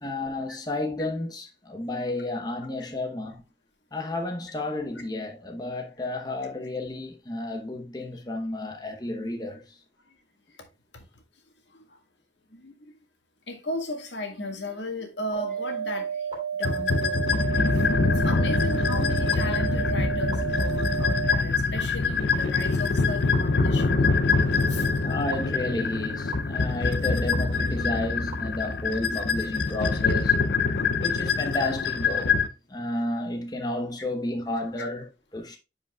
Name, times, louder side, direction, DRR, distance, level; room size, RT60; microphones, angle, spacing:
voice 1, 0.0-3.4 3.9-9.8 25.0-30.4 31.0-32.4 32.7-35.1 35.3-35.6, left 2 dB, 25° left, 1.0 m, -32 dB
voice 2, 12.5-12.9 13.5-16.3 16.6-17.3 17.7-23.9 24.7-24.9 34.8-34.9, left 1 dB, 90° left, 1.8 m, -35 dB
sound 1, 15.3-21.3 22.3-22.4 23.3-23.4 24.3-24.4 25.3-25.4 26.3-26.4 27.3-27.4 28.3-28.4, right 7 dB, 30° right, 3.1 m, -31 dB
sound 2, 16.6-32.5, left 4 dB, 70° left, 0.7 m, -24 dB
10.0 x 5.1 x 2.3 m
head